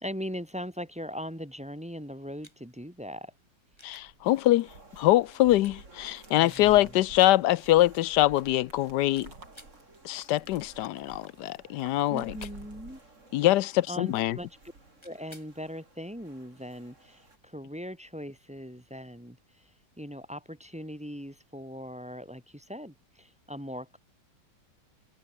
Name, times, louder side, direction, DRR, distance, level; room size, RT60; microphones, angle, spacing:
voice 1, 0.0-3.3 6.4-6.9 12.1-13.0 13.9-14.5 15.0-24.0, equal, 5° right, 1.2 m, -40 dB
sound 1, 2.4-2.6 3.8-4.1 5.6-5.8 6.5-6.7 9.1-9.8 12.1-12.6 15.0-15.5 17.8-17.9, left 1 dB, 15° left, 3.5 m, -53 dB
sound 2, 3.7-13.7 14.0-14.9, right 3 dB, 80° right, 5.6 m, -51 dB
voice 2, 3.8-9.3 10.0-12.3 13.3-14.4, left 15 dB, 75° left, 1.2 m, -24 dB
sound 3, 4.2-17.4, right 2 dB, 40° right, 4.5 m, -57 dB
omnidirectional pair, 1.9 m